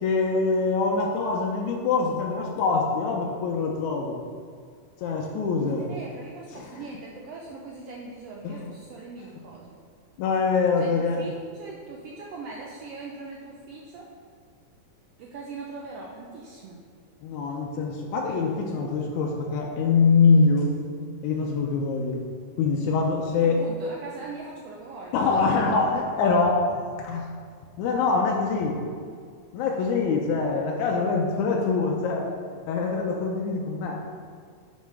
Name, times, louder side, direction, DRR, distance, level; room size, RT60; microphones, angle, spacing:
voice 1, 0.0-4.2 5.0-5.8 6.5-6.7 8.4-8.7 10.2-11.3 17.2-20.7 21.2-22.2 22.6-23.6 25.1-27.3 27.8-28.8 29.5-32.3 32.7-34.0, left 4 dB, 85° left, -1 dB, 2.0 m, -24 dB
voice 2, 5.6-9.8 10.8-14.1 15.2-16.8 23.4-25.2, right 3 dB, 85° right, -2 dB, 1.4 m, -40 dB
6.5 x 4.0 x 4.7 m, 2.1 s
omnidirectional pair, 3.4 m